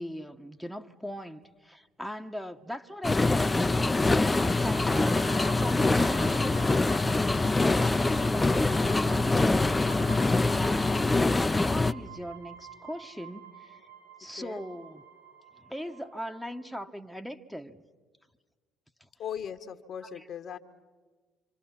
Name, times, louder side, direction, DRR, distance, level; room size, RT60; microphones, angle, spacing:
voice 1, 0.0-8.5 8.9-13.8 14.2-15.0 15.6-17.8 19.0-19.1, equal, ahead, 1.2 m, -39 dB
sound 1, 1.4-1.6 2.6-2.7 3.2-3.3 4.3-6.2 6.6-10.1 10.5-10.6, right 5 dB, 65° right, 7.8 m, -52 dB
sound 2, 3.0-11.9, left 2 dB, 20° left, 0.7 m, -24 dB
sound 3, 4.3-16.8, right 8 dB, 85° right, 4.8 m, -48 dB
voice 2, 19.2-20.6, left 8 dB, 55° left, 1.4 m, -38 dB
26.5 x 26.0 x 5.9 m
hypercardioid pair, 55°, 0 cm